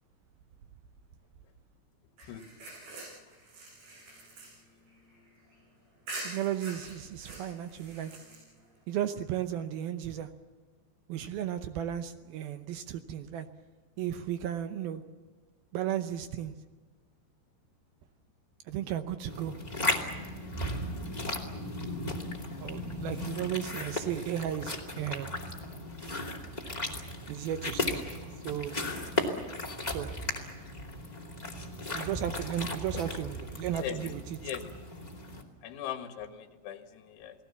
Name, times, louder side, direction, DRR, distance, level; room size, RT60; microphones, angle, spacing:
sound 1, 2.2-5.6 6.1-8.8, right 2 dB, 55° right, 8.5 m, -45 dB
voice 1, 6.2-8.1 8.9-10.3 11.1-13.5 14.0-15.0 15.7-16.5 18.7-19.6 22.6-25.4 27.3-28.1 28.4-28.8 29.9-30.1 31.9-34.4, right 10 dB, 80° right, 9 dB, 2.2 m, -34 dB
sound 2, 19.3-35.4, left 1 dB, 20° left, 1.2 m, -36 dB
voice 2, 35.6-37.3, left 11 dB, 80° left, 6 dB, 4.1 m, -39 dB
29.5 x 19.0 x 7.1 m, 1.4 s
omnidirectional pair, 5.4 m